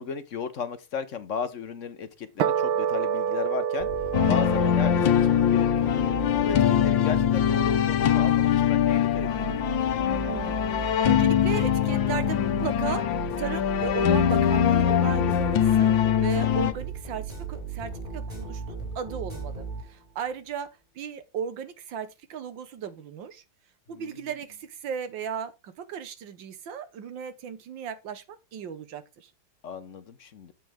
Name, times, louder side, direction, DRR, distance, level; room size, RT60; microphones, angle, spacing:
voice 1, 0.0-3.9 4.2-5.9 6.4-9.6 23.9-24.3 29.6-30.5, left 6 dB, 50° left, 0.9 m, -35 dB
sound 1, 2.4-8.9, right 8 dB, 90° right, 1.6 m, -30 dB
sound 2, 3.8-20.2, right 5 dB, 15° right, 6.1 m, -37 dB
sound 3, 4.1-16.7, left 10 dB, 70° left, 1.6 m, -23 dB
voice 2, 10.2-13.1 13.4-20.7 21.0-23.4 23.9-29.3, right 7 dB, 70° right, 1.8 m, -36 dB
9.1 x 7.6 x 3.6 m
omnidirectional pair, 2.2 m